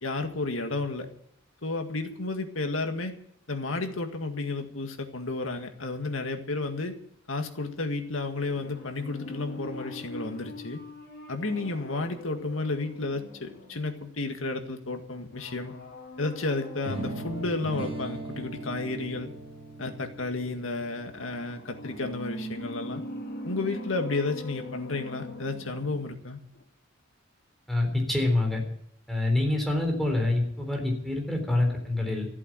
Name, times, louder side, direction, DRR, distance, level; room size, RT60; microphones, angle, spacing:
voice 1, 0.0-1.1 1.6-3.1 3.5-6.9 7.3-10.8 11.3-15.7 16.2-19.3 19.8-23.0 23.4-26.4, left 3 dB, 85° left, 5 dB, 2.0 m, -32 dB
sound 1, 8.5-14.2 15.3-18.3 21.1-26.3 26.5-26.6, left 1 dB, 60° left, 4.8 m, -42 dB
sound 2, 16.8-22.8, right 2 dB, 30° right, 4.1 m, -39 dB
voice 2, 27.7-28.6 29.1-32.3, left 2 dB, ahead, 1 dB, 3.9 m, -26 dB
14.5 x 8.5 x 9.0 m, 0.68 s
head